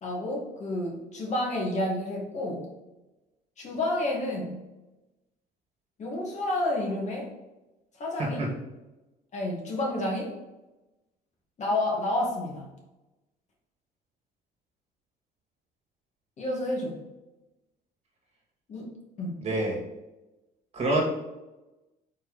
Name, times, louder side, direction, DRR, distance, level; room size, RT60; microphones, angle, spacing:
voice 1, 0.0-2.7 3.6-4.6 6.0-7.3 8.0-8.4 9.3-10.4 11.6-12.7 16.4-17.0 18.7-19.4, left 1 dB, 45° left, -1 dB, 2.1 m, -30 dB
voice 2, 8.2-8.5 19.4-19.8 20.7-21.0, right 1 dB, 40° right, -2 dB, 2.3 m, -26 dB
4.6 x 4.4 x 5.3 m, 1.0 s
cardioid pair, 110°, 17 cm